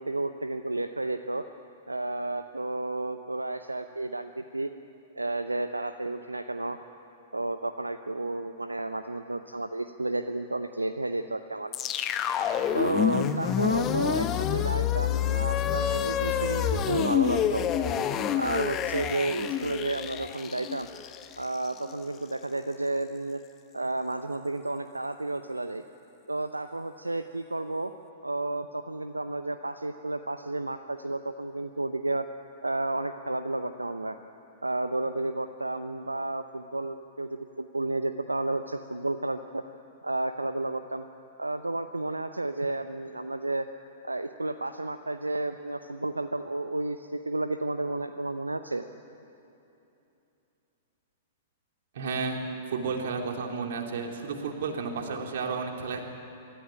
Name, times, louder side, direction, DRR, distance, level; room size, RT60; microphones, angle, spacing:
voice 1, 0.0-1.5 1.9-4.7 5.2-6.8 7.3-11.9 12.7-17.6 18.4-20.9 21.4-23.4 23.7-25.8 26.3-27.9 28.2-32.2 32.6-34.2 34.6-39.6 40.0-41.1 41.4-43.7 44.0-48.8, right 2 dB, 90° right, 9 dB, 0.7 m, -32 dB
sound 1, 11.7-21.9, left 9 dB, 30° left, 1.2 m, -28 dB
voice 2, 51.9-52.4 52.7-56.1, right 4 dB, 60° right, 2 dB, 3.2 m, -32 dB
25.5 x 14.0 x 10.0 m, 2.8 s
figure-of-eight pair, 105°, 0 cm